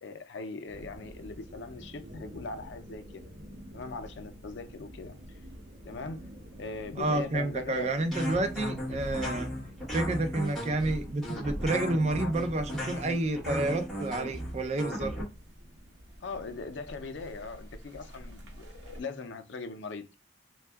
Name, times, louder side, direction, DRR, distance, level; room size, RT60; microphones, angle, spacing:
voice 1, 0.0-3.3 3.7-5.2 5.8-6.3 6.6-7.9 16.2-20.1, left 3 dB, 80° left, 0.5 m, -40 dB
sound 1, 0.7-19.0, equal, 75° right, 0.8 m, -48 dB
voice 2, 7.0-9.5 9.9-15.1, right 2 dB, 35° right, 0.4 m, -30 dB
sound 2, 8.1-15.2, equal, ahead, 1.2 m, -35 dB
2.7 x 2.2 x 3.4 m
head